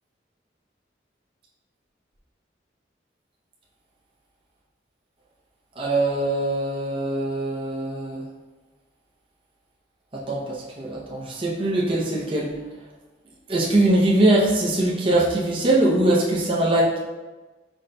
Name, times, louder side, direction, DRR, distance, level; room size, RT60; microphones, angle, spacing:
voice 1, 5.8-8.2 10.1-12.5 13.5-17.0, right 1 dB, 30° right, -4 dB, 0.6 m, -22 dB
4.9 x 4.0 x 2.2 m, 1.2 s
head